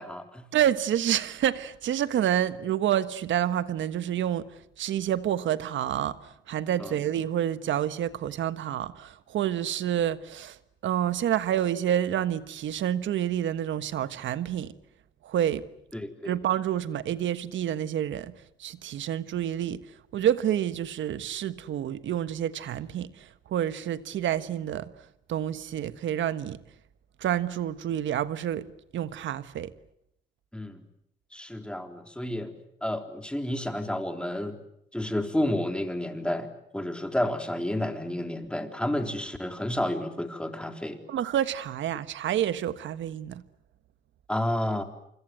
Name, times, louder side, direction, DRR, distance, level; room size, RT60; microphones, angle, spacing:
voice 1, 0.0-0.5 6.8-7.0 15.9-16.4 30.5-30.8 31.3-32.5 32.8-34.6 34.9-41.0 44.3-44.8, left 1 dB, 5° left, 3.7 m, -31 dB
voice 2, 0.5-4.5 4.8-6.2 6.5-10.6 10.8-14.7 15.2-15.7 16.2-18.3 18.6-19.8 20.1-23.1 23.5-24.9 25.3-26.6 27.2-28.7 28.9-29.7 41.1-43.4, right 10 dB, 70° right, 1.4 m, -28 dB
27.0 x 25.0 x 7.7 m
cardioid pair, 90°, 20 cm